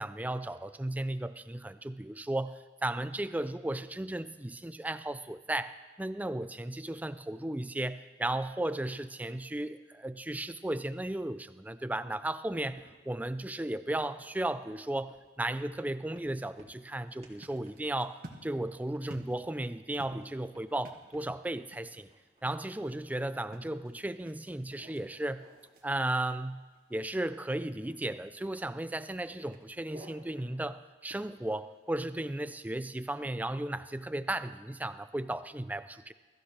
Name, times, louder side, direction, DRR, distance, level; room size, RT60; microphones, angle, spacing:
voice 1, 0.0-22.1 22.4-25.4 25.8-26.6 26.9-36.1, right 1 dB, 10° right, 12 dB, 0.4 m, -35 dB
sound 1, 12.8-13.4 13.9-15.2 15.6-15.9 16.1-16.9 17.2-17.4 17.6-17.8 18.3-18.4 18.9-19.7 20.1-20.8 21.1-21.3 22.0-22.4 22.9-24.0 24.7-25.6 25.9-26.8 27.8-27.9 28.3-28.8 29.3-30.1 30.4-30.6 31.1-32.2, equal, 35° right, 2.5 m, -57 dB
sound 2, 17.1-30.6, right 1 dB, 55° right, 1.6 m, -57 dB
22.0 x 14.5 x 3.3 m, 1.4 s
head